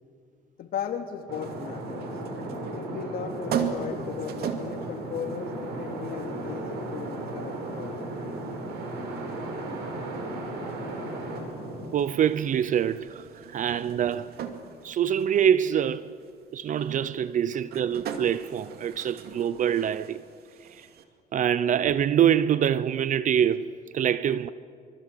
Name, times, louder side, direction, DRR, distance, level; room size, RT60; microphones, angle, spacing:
voice 1, 0.6-2.2 2.7-8.1, left 7 dB, 60° left, 2.9 m, -36 dB
sound 1, 1.3-21.0, right 7 dB, 70° right, 2.4 m, -40 dB
sound 2, 1.3-11.9, right 2 dB, 85° right, 6.6 m, -35 dB
voice 2, 11.9-14.3 14.8-16.1 16.5-20.2 20.7-20.8 21.3-24.5, right 9 dB, 50° right, 0.7 m, -25 dB
25.0 x 25.0 x 8.4 m
cardioid pair, 110°, 17 cm